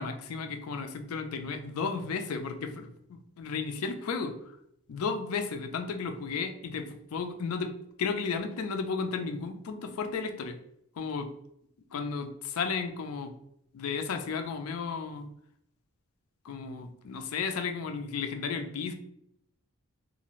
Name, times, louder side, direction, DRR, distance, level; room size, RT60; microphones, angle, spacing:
voice 1, 0.0-4.3 4.9-7.7 8.0-10.6 11.0-11.3 11.9-13.3 13.7-15.3 16.4-18.9, left 5 dB, 80° left, 7 dB, 0.4 m, -33 dB
2.6 x 2.4 x 3.0 m, 0.76 s
head